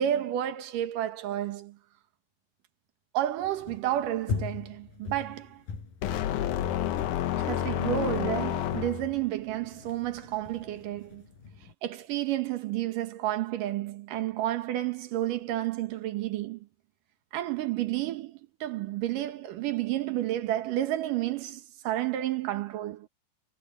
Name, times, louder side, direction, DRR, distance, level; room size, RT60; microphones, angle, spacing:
voice 1, 0.0-1.8 3.1-5.6 7.4-11.2 11.8-16.7 17.3-23.1, right 13 dB, 80° right, 3.0 m, -31 dB
sound 1, 3.4-11.7, left 5 dB, 90° left, 6.8 m, -41 dB
sound 2, 6.0-9.3, left 11 dB, 70° left, 2.4 m, -29 dB
omnidirectional pair, 3.8 m